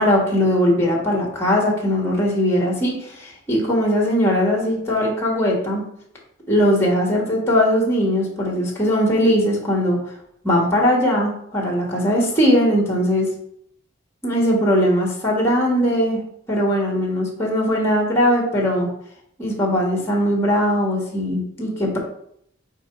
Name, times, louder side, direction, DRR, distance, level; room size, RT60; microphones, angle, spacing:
voice 1, 0.0-5.8 6.5-10.0 10.4-13.3 14.2-16.2 16.5-18.9 19.4-22.0, equal, 15° left, -1 dB, 1.3 m, -19 dB
4.6 x 4.6 x 4.5 m, 0.71 s
head